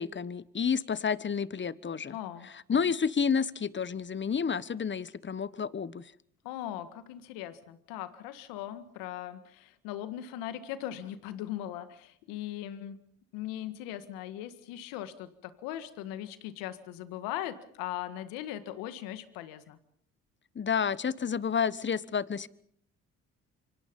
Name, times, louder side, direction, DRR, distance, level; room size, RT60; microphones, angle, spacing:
voice 1, 0.0-2.1 2.7-6.0 20.5-22.5, left 6 dB, 35° left, 19 dB, 1.2 m, -30 dB
voice 2, 2.1-2.5 6.4-13.0 13.3-19.8, left 12 dB, 85° left, 12 dB, 1.9 m, -39 dB
27.0 x 25.0 x 5.4 m, 0.63 s
hypercardioid pair, 60°, 34 cm